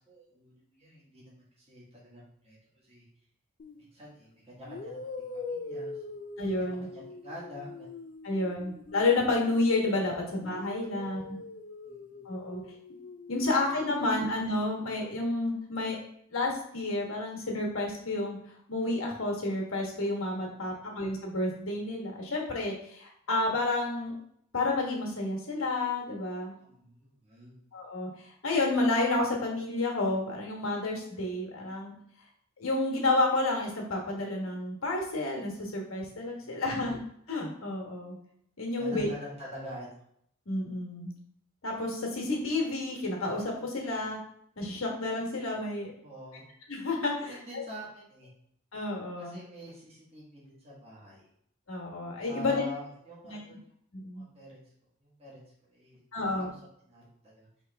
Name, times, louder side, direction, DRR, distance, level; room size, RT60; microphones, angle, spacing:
voice 1, 0.0-2.6 2.8-3.0 3.7-5.1 5.3-7.9 10.2-10.3 10.9-11.3 11.8-12.2 13.9-14.2 26.6-27.6 36.4-36.6 38.8-40.0 46.0-46.5 47.2-48.3 49.2-51.3 52.2-53.6 54.1-54.7 55.0-56.6 56.9-57.5, equal, 30° right, -6 dB, 1.4 m, -47 dB
sound 1, 3.6-3.8 4.6-10.0 10.4-14.4, left 3 dB, 40° left, 0.3 m, -43 dB
voice 2, 6.4-6.9 8.2-11.4 12.2-12.6 13.3-16.0 16.3-18.4 18.7-24.1 24.5-26.5 27.7-28.1 28.4-31.9 32.6-37.0 37.3-38.2 38.6-39.1 40.5-41.1 41.6-44.2 44.6-45.9 46.7-47.4 48.7-49.4 51.7-52.6 53.2-53.4 53.9-54.3 56.1-56.5, left 2 dB, 90° left, -1 dB, 1.2 m, -30 dB
4.8 x 3.1 x 3.3 m, 0.69 s
head